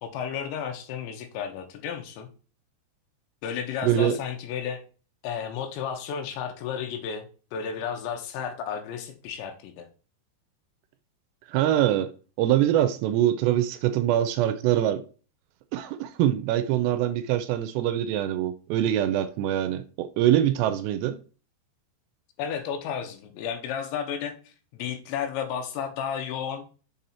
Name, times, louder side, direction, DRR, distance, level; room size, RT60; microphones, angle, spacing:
voice 1, 0.0-2.3 3.4-4.8 5.2-7.3 7.5-9.9 22.4-26.7, left 7 dB, 85° left, 3.3 m, -33 dB
voice 2, 3.8-4.2 11.5-12.1 12.4-15.0 15.7-21.2, right 12 dB, 85° right, 2.6 m, -24 dB
7.1 x 4.1 x 4.3 m
omnidirectional pair, 5.2 m